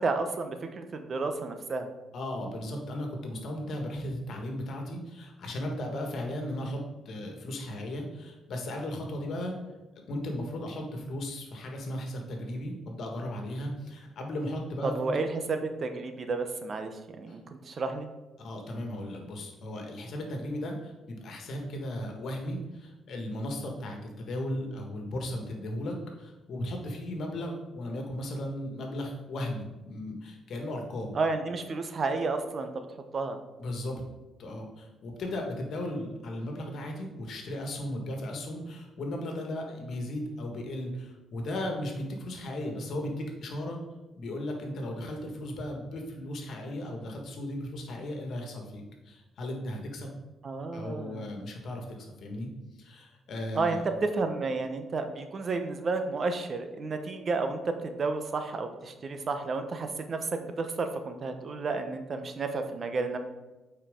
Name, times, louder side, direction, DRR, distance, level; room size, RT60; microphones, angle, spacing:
voice 1, 0.0-1.9 14.8-16.9 17.2-18.1 31.1-32.9 33.1-33.4 50.4-51.2 53.5-63.2, right 3 dB, 45° right, 7 dB, 0.8 m, -31 dB
voice 2, 2.1-9.5 9.9-15.2 17.3-17.4 18.4-31.2 33.6-34.0 34.4-43.8 44.2-50.1 50.7-52.5 52.8-53.8, left 1 dB, 65° left, 2 dB, 1.6 m, -36 dB
8.7 x 4.6 x 3.7 m, 1.1 s
cardioid pair, 90°, 0 cm